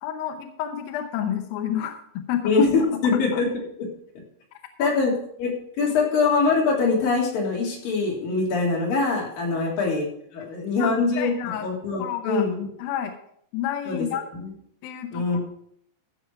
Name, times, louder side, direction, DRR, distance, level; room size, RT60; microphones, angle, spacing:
voice 1, 0.0-2.5 3.1-3.4 4.8-5.0 10.4-10.5 10.8-10.9 11.2-11.7 12.0-12.5 12.8-13.1 13.5-14.2 14.8-15.4, left 10 dB, 75° left, 5 dB, 2.2 m, -30 dB
voice 2, 2.4-3.5 4.8-5.1 5.4-5.5 5.8-10.0 10.3-12.7 13.9-14.1 14.3-14.5 15.1-15.4, left 4 dB, 55° left, -3 dB, 4.5 m, -23 dB
14.0 x 7.3 x 4.7 m, 0.67 s
omnidirectional pair, 5.1 m